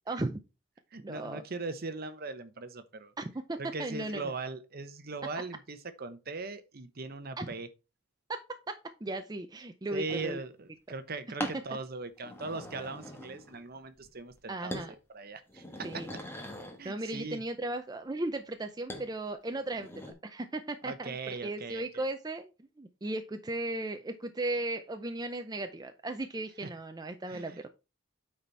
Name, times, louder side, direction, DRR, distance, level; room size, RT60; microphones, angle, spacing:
voice 1, 0.1-0.4 1.0-1.4 3.2-4.3 7.4-7.5 8.3-8.4 8.7-10.4 14.5-14.9 15.8-16.1 16.8-19.9 20.2-22.5 22.8-27.7, right 2 dB, 20° right, 0.5 m, -36 dB
voice 2, 0.9-3.1 3.6-7.7 9.9-16.2 16.8-17.4 20.8-22.0 26.6-26.7 27.3-27.7, right 3 dB, 50° right, 0.9 m, -40 dB
sound 1, 10.1-10.3 11.4-11.6 12.2-13.6 14.0-14.4 14.7-14.9 15.4-16.8 18.9-19.1 19.6-20.1, left 1 dB, 10° left, 1.3 m, -42 dB
8.7 x 4.2 x 4.5 m
head